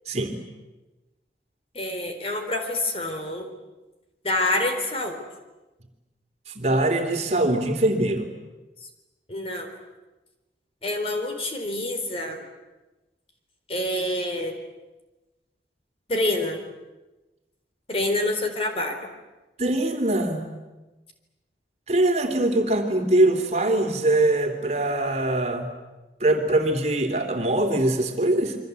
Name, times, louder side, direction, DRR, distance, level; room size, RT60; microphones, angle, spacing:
voice 1, 0.1-0.4 6.5-8.3 19.6-20.5 21.9-25.7 26.2-28.6, right 1 dB, 40° right, 5 dB, 3.1 m, -22 dB
voice 2, 1.7-3.5 4.2-5.2 9.3-9.7 10.8-12.4 13.7-14.5 16.1-16.6 17.9-19.0, left 1 dB, 35° left, 4 dB, 4.0 m, -27 dB
28.5 x 24.5 x 8.3 m, 1.1 s
head